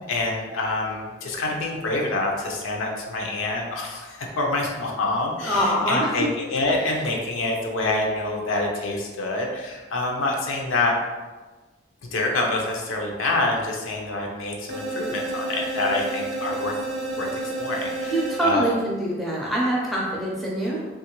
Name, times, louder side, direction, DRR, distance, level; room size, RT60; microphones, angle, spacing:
voice 1, 0.0-10.9 12.1-16.7 17.2-17.3 17.6-18.7, left 2 dB, 80° left, 0 dB, 0.5 m, -26 dB
voice 2, 5.4-6.3 18.1-20.9, right 1 dB, ahead, -5 dB, 0.5 m, -24 dB
sound 1, 14.7-18.8, right 2 dB, 55° right, 0.5 m, -30 dB
2.9 x 2.4 x 2.9 m, 1.3 s
head